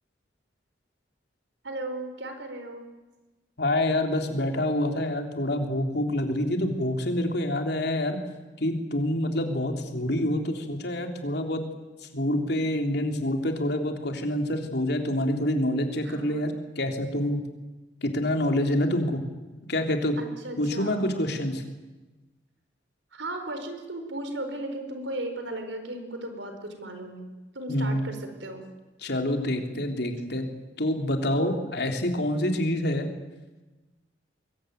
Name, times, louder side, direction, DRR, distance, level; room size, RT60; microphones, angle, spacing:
voice 1, 1.6-2.9 16.0-16.5 20.2-21.1 23.1-27.3 27.5-28.6, right 1 dB, 80° right, 7 dB, 4.5 m, -36 dB
voice 2, 3.6-8.2 8.6-11.6 12.0-17.4 18.0-19.2 19.7-20.2 20.6-21.6 27.7-28.0 29.0-30.5 30.8-33.1, left 1 dB, 60° left, 4 dB, 3.5 m, -27 dB
24.0 x 22.5 x 9.3 m, 1.2 s
head